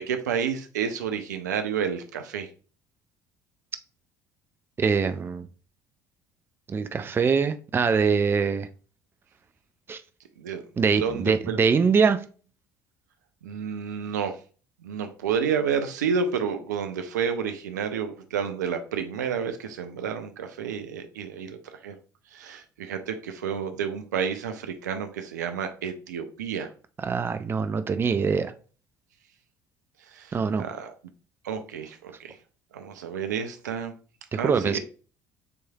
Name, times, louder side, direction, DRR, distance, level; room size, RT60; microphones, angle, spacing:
voice 1, 0.0-2.5 10.4-10.6 11.0-11.6 13.4-14.4 14.8-21.9 22.3-26.7 30.1-30.9 31.4-32.4 32.7-33.9 34.4-34.8, right 7 dB, 75° right, 0.5 m, -30 dB
voice 2, 4.8-5.5 6.7-8.7 9.9-10.0 10.8-12.2 27.0-28.5 30.3-30.6 34.3-34.8, right 5 dB, 25° right, 0.4 m, -23 dB
6.9 x 3.1 x 2.3 m
figure-of-eight pair, 55°, 10 cm